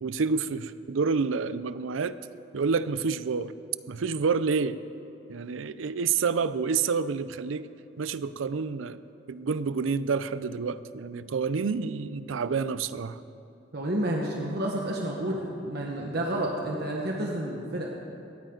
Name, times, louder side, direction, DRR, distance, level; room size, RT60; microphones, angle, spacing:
voice 1, 0.0-2.2 2.5-3.5 3.9-4.8 5.3-7.7 8.0-9.0 9.3-13.2, right 5 dB, 85° right, 15 dB, 0.5 m, -28 dB
voice 2, 13.7-17.9, right 1 dB, 55° right, -1 dB, 1.3 m, -30 dB
18.5 x 13.5 x 3.9 m, 2.7 s
head